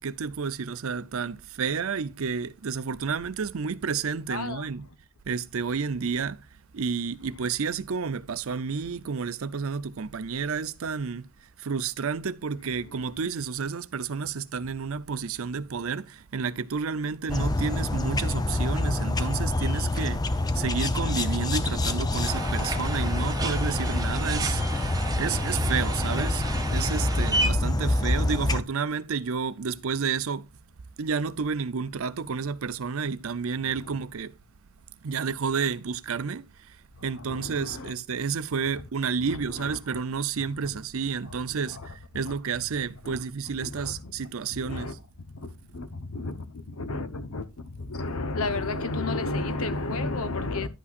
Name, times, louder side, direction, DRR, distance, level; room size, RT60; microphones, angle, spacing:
voice 1, 0.0-4.9 5.3-6.5 6.7-11.3 11.6-26.5 26.7-30.5 31.0-34.3 35.0-44.9, right 5 dB, 75° right, 0.6 m, -31 dB
voice 2, 4.3-4.9 12.8-13.2 33.6-34.1 36.9-37.9 39.2-40.0 40.4-40.8 41.2-42.6 43.0-43.2 43.5-50.7, left 2 dB, 80° left, 1.0 m, -34 dB
sound 1, 17.3-28.6, left 2 dB, 20° left, 0.6 m, -27 dB
sound 2, 22.3-27.5, right 2 dB, 15° right, 0.9 m, -33 dB
11.0 x 8.4 x 2.5 m
head